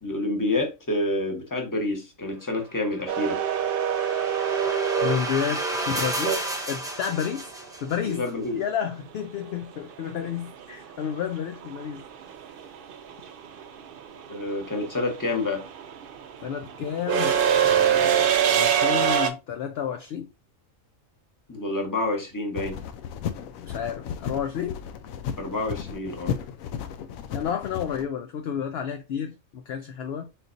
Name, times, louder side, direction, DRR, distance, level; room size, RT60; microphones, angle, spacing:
voice 1, 0.0-3.4 8.0-8.6 14.3-15.6 21.5-22.8 25.4-26.3, left 2 dB, 15° left, 1.0 m, -28 dB
sound 1, 2.8-8.1, right 1 dB, 5° right, 0.5 m, -33 dB
sound 2, 3.1-7.1 9.5-9.6 10.9-11.2 11.5-19.3, right 8 dB, 60° right, 0.6 m, -24 dB
voice 2, 5.0-6.4 6.7-7.5 7.8-8.3 8.5-12.0 16.4-20.3 23.6-24.8 27.3-30.2, left 8 dB, 65° left, 0.6 m, -31 dB
sound 3, 22.6-28.1, left 8 dB, 80° left, 1.0 m, -34 dB
4.3 x 4.0 x 2.5 m
omnidirectional pair, 1.4 m